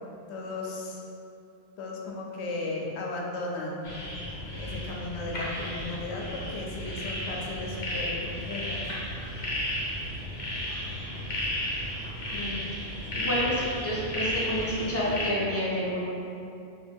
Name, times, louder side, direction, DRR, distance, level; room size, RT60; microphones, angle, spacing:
voice 1, 0.3-1.0 1.8-3.8 4.6-8.8, left 2 dB, 85° left, -1 dB, 0.9 m, -35 dB
sound 1, 3.8-15.3, left 1 dB, 60° left, 0.9 m, -33 dB
voice 2, 12.3-12.8 13.1-16.0, equal, 20° left, -8 dB, 0.5 m, -29 dB
3.0 x 2.5 x 3.3 m, 2.7 s
omnidirectional pair, 1.1 m